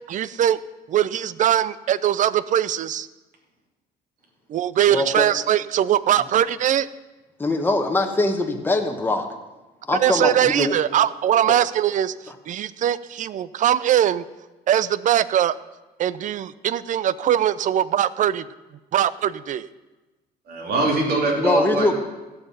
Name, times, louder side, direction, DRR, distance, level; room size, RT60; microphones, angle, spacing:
voice 1, 0.1-0.6 0.9-3.1 4.5-6.9 10.0-12.1 12.5-14.2 14.7-15.5 16.0-18.4 18.9-19.6, right 11 dB, 50° right, 18 dB, 0.4 m, -21 dB
voice 2, 4.9-5.3 6.2-6.3 7.4-9.3 9.9-10.7 11.5-11.6 12.3-12.4 21.4-21.9, left 2 dB, 10° left, 4 dB, 1.2 m, -22 dB
voice 3, 20.5-21.9, right 2 dB, 65° right, -1 dB, 2.9 m, -22 dB
16.5 x 5.7 x 5.6 m, 1.1 s
cardioid pair, 110°, 17 cm